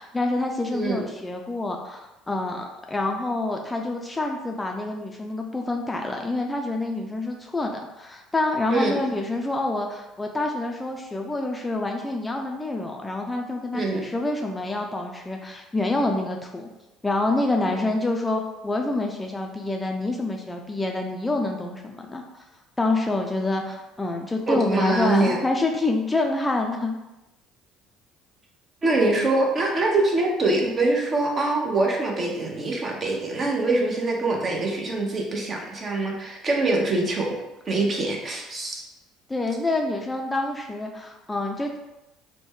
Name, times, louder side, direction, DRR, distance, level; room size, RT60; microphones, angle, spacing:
voice 1, 0.0-16.7 17.0-22.4 22.8-27.0 39.3-41.8, left 2 dB, 15° left, 2 dB, 0.4 m, -27 dB
voice 2, 0.7-1.0 8.7-9.0 13.7-14.0 17.6-17.7 24.5-25.4 28.8-37.3 37.7-38.8, right 2 dB, 35° right, 0 dB, 0.8 m, -24 dB
3.0 x 2.2 x 3.5 m, 0.97 s
hypercardioid pair, 60°, 0 cm